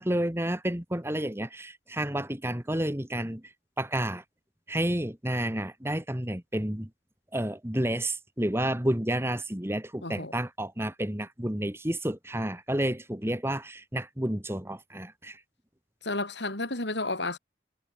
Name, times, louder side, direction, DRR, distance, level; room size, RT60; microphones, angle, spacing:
voice 1, 0.0-3.4 3.8-4.2 4.7-6.9 7.3-15.4, right 1 dB, 15° right, 2.1 m, -30 dB
voice 2, 10.0-10.4 16.0-17.4, left 2 dB, 65° left, 5.9 m, -32 dB
head